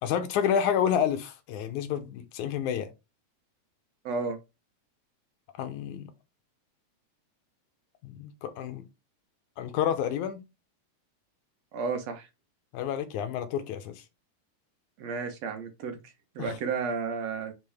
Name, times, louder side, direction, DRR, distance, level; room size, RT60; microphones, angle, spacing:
voice 1, 0.0-2.9 5.6-6.1 8.0-8.8 9.6-10.4 12.7-13.9 16.4-16.5, left 9 dB, 85° left, 2.4 m, -29 dB
voice 2, 4.1-4.4 11.7-12.3 15.0-17.5, right 5 dB, 70° right, 2.1 m, -32 dB
8.6 x 3.8 x 3.5 m
omnidirectional pair, 3.3 m